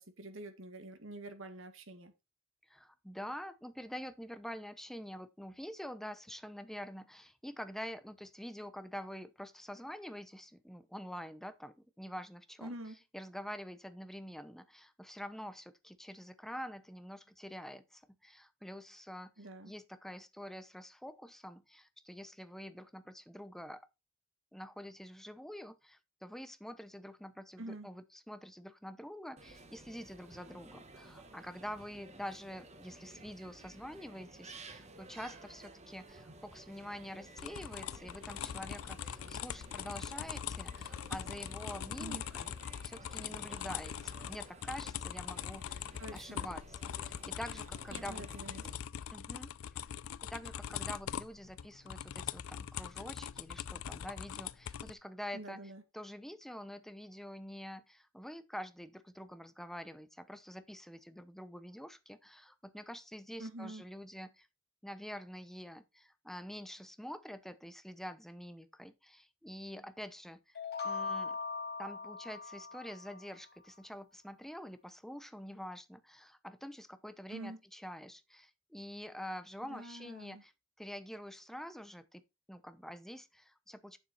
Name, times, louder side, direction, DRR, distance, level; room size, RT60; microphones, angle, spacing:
voice 1, 0.0-2.1 12.6-13.0 19.4-19.7 27.6-27.9 42.0-42.3 46.0-46.5 47.9-48.7 55.3-55.8 63.4-63.8 77.3-77.6 79.7-80.4, right 1 dB, 70° right, 2.1 m, -46 dB
voice 2, 2.7-12.7 13.1-23.8 24.5-42.5 42.8-45.8 46.1-48.2 49.1-49.5 50.2-55.6 55.9-64.5 64.8-71.4 71.8-80.5 80.8-82.2 82.5-84.0, equal, ahead, 0.8 m, -46 dB
sound 1, 29.4-48.8, right 2 dB, 35° right, 1.4 m, -54 dB
sound 2, 37.4-54.9, left 9 dB, 80° left, 0.4 m, -42 dB
sound 3, 70.5-73.3, left 4 dB, 50° left, 1.1 m, -40 dB
9.2 x 7.3 x 4.1 m
head